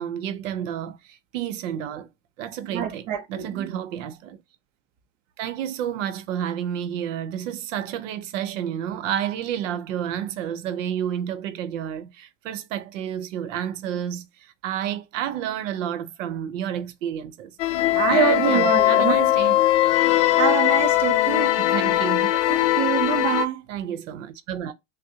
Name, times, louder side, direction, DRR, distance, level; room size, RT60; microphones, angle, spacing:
voice 1, 0.0-2.1 2.4-4.4 5.4-17.6 18.1-19.6 21.6-22.4 23.7-24.7, right 9 dB, 80° right, 0.8 m, -30 dB
voice 2, 2.7-3.7 17.9-19.2 20.4-21.5 22.5-23.6, right 9 dB, 35° right, 0.7 m, -25 dB
sound 1, 17.6-23.5, left 14 dB, 45° left, 0.5 m, -20 dB
6.3 x 2.2 x 2.8 m
supercardioid pair, 175°, 38 cm